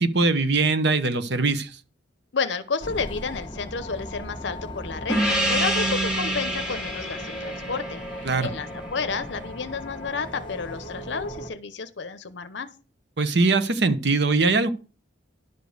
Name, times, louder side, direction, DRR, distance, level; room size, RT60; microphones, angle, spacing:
voice 1, 0.0-1.7 8.2-8.5 13.2-14.7, right 3 dB, 60° right, 1.0 m, -21 dB
voice 2, 2.3-8.0 8.4-12.7, left 5 dB, 65° left, 0.7 m, -31 dB
sound 1, 2.8-11.5, left 1 dB, 25° left, 1.7 m, -38 dB
Gong, 5.1-10.1, right 1 dB, 5° right, 1.7 m, -28 dB
11.0 x 5.2 x 6.5 m
head